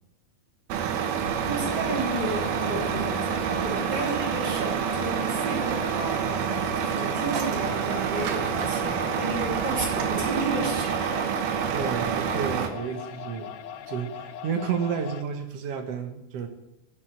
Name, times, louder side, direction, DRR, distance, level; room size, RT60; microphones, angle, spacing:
Truck, 0.7-12.7, right 7 dB, 80° right, 3.0 m, -28 dB
sound 1, 1.5-15.2, left 9 dB, 80° left, 2.6 m, -40 dB
voice 1, 1.5-3.1 3.6-6.3 6.8-11.3, right 2 dB, 30° right, -2 dB, 3.7 m, -32 dB
voice 2, 11.7-13.6 13.9-16.5, right 6 dB, 55° right, 6 dB, 1.8 m, -31 dB
11.5 x 8.4 x 9.0 m, 0.89 s
omnidirectional pair, 4.3 m